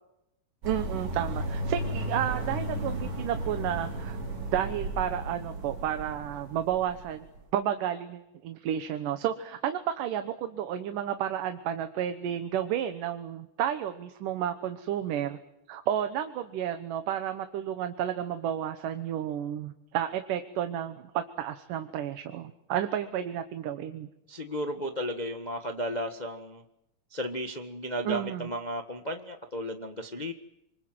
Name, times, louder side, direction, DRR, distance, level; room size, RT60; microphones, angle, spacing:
sound 1, 0.6-7.4, right 1 dB, 65° right, 6.1 m, -34 dB
voice 1, 0.7-4.2 4.5-7.3 7.5-15.4 15.7-24.1 28.0-28.5, right 10 dB, 80° right, 8 dB, 2.8 m, -31 dB
voice 2, 24.3-26.6 27.1-30.3, equal, 80° left, 5 dB, 0.4 m, -34 dB
28.0 x 24.5 x 7.8 m, 0.85 s
omnidirectional pair, 3.7 m